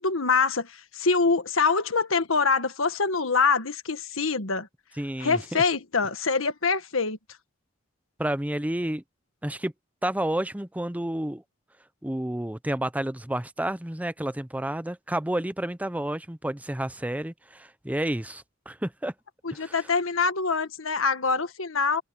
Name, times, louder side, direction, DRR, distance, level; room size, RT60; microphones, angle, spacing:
voice 1, 0.0-4.7 5.2-7.2 19.4-22.0, left 4 dB, 85° left, 1.6 m, -25 dB
voice 2, 5.0-5.6 8.2-9.0 9.4-9.7 10.0-11.4 12.0-19.1 19.6-19.8, right 1 dB, 10° right, 0.7 m, -30 dB
head